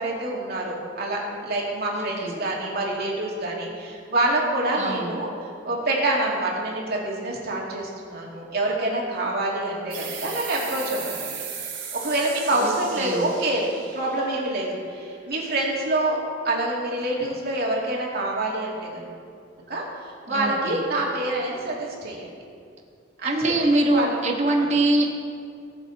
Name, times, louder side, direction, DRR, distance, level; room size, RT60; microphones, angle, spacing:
voice 1, 0.0-5.3 5.6-11.4 11.9-13.6 13.9-19.1 19.7-22.3 23.2-24.2, right 2 dB, 55° right, -3 dB, 2.4 m, -26 dB
voice 2, 1.9-2.4 4.7-5.1 12.5-13.3 20.3-20.8 23.2-25.1, right 2 dB, 35° right, 2 dB, 1.3 m, -24 dB
sound 1, 9.9-15.2, right 6 dB, 75° right, 3.0 m, -37 dB
19.5 x 7.1 x 4.1 m, 2.4 s
head